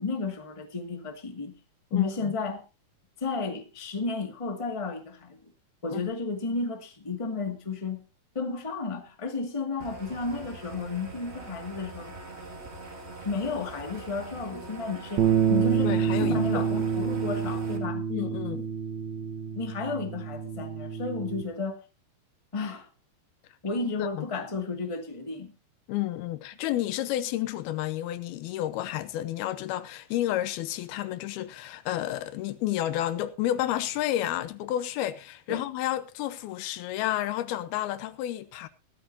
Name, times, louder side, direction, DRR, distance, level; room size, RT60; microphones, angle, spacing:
voice 1, 0.0-1.6 1.9-2.6 3.2-5.4 5.8-8.0 8.3-12.1 13.2-15.9 16.2-18.1 19.6-21.8 22.5-22.9 23.6-25.5 35.5-35.6, left 4 dB, 15° left, 1.1 m, -32 dB
voice 2, 1.9-2.3 5.9-6.0 15.8-16.6 18.1-18.7 23.9-24.3 25.9-38.7, left 13 dB, 90° left, 2.8 m, -31 dB
sound 1, 9.8-17.8, right 2 dB, 25° right, 1.5 m, -43 dB
sound 2, 15.2-21.4, right 7 dB, 60° right, 2.0 m, -27 dB
17.5 x 12.5 x 2.8 m
omnidirectional pair, 4.4 m